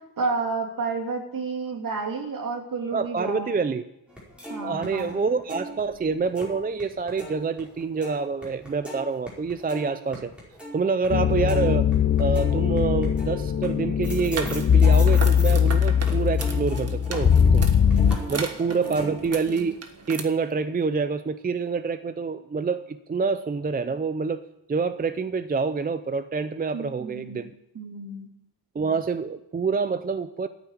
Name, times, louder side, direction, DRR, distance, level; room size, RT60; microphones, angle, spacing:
voice 1, 0.2-3.6 4.5-5.2 18.3-18.4 18.7-19.2 26.7-27.4 27.7-28.3, right 4 dB, 55° right, 1 dB, 3.1 m, -31 dB
voice 2, 2.9-3.8 4.6-10.3 10.7-11.9 12.2-17.7 18.3-19.8 20.1-24.4 24.7-27.5 28.7-30.5, right 4 dB, 25° right, 11 dB, 0.5 m, -27 dB
sound 1, 4.1-6.8 7.1-15.7 16.1-19.4, equal, 5° right, 5.0 m, -39 dB
sound 2, 11.1-18.2, left 8 dB, 30° left, 0.5 m, -20 dB
sound 3, 14.1-20.2, right 4 dB, 40° right, 1.5 m, -37 dB
13.5 x 9.0 x 9.4 m, 0.85 s
wide cardioid pair, 175°, 39 cm